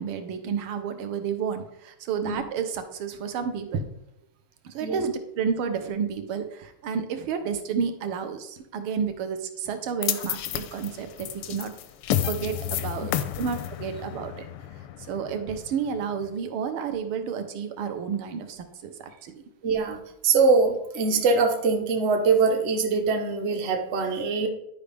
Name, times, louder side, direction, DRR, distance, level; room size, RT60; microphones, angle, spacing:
voice 1, 0.0-3.9 4.6-11.7 12.1-14.3 15.0-19.4, right 6 dB, 75° right, 7 dB, 1.7 m, -31 dB
sound 1, 10.0-16.3, left 11 dB, 85° left, 1.5 m, -31 dB
voice 2, 19.6-24.5, right 4 dB, 50° right, 4 dB, 0.7 m, -23 dB
11.0 x 5.1 x 3.4 m, 0.79 s
omnidirectional pair, 2.4 m